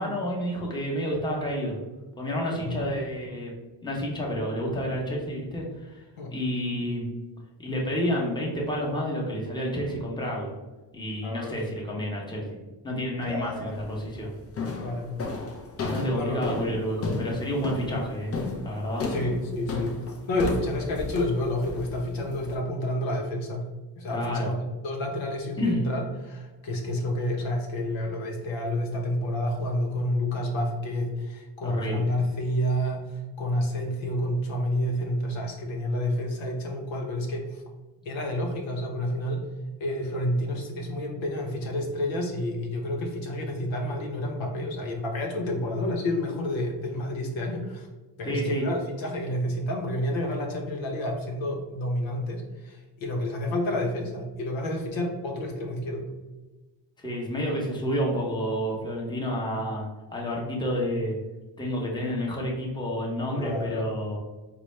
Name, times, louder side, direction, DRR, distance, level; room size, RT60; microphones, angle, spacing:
voice 1, 0.0-1.8 2.2-3.5 3.8-6.0 6.3-7.1 7.6-10.5 10.9-12.6 12.8-14.3 15.8-18.3 18.6-19.1 24.1-24.5 25.6-25.8 31.6-32.1 48.2-48.6 57.0-61.2 61.6-64.2, equal, 10° left, -3 dB, 0.9 m, -29 dB
voice 2, 11.2-11.6 13.2-13.8 14.8-15.1 16.1-16.4 19.1-20.0 20.3-23.7 24.0-24.6 24.8-37.6 38.0-39.5 39.8-47.9 48.2-56.1 63.3-63.9, left 1 dB, 80° left, 0 dB, 0.9 m, -29 dB
sound 1, 13.7-14.1 14.6-22.5, left 3 dB, 30° left, 0.6 m, -33 dB
3.9 x 2.2 x 3.1 m, 1.2 s
cardioid pair, 85°, 46 cm